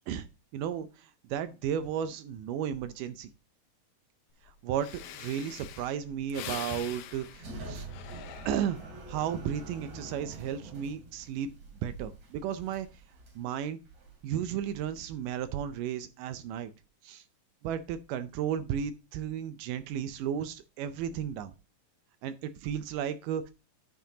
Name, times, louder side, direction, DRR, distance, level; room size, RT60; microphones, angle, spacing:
voice 1, 0.5-3.3 4.6-7.9 8.5-8.8 9.1-11.5 11.8-12.9 13.4-13.8 14.2-16.7 17.0-17.2 17.6-21.5 22.2-23.5, right 9 dB, 80° right, 11 dB, 2.2 m, -34 dB
Breathing, 4.5-4.6 4.8-9.0 9.5-9.9, left 10 dB, 85° left, 2.6 m, -44 dB
sound 1, 7.0-15.6, right 2 dB, 55° right, 4.0 m, -46 dB
9.5 x 8.3 x 2.7 m, 0.30 s
omnidirectional pair, 3.9 m